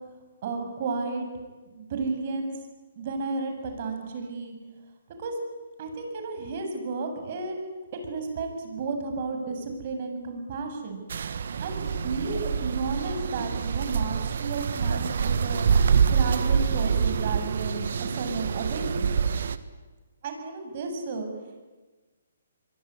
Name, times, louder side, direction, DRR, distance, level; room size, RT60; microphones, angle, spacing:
voice 1, 0.4-1.3 1.7-2.5 3.0-4.5 5.2-5.4 5.8-7.5 7.9-11.0 11.6-15.7 16.1-19.1 20.2-21.3, right 4 dB, 45° right, 5 dB, 7.3 m, -32 dB
sound 1, 11.1-19.6, right 6 dB, 65° right, 1.5 m, -26 dB
25.5 x 23.0 x 9.9 m, 1.3 s
hypercardioid pair, 140°, 0 cm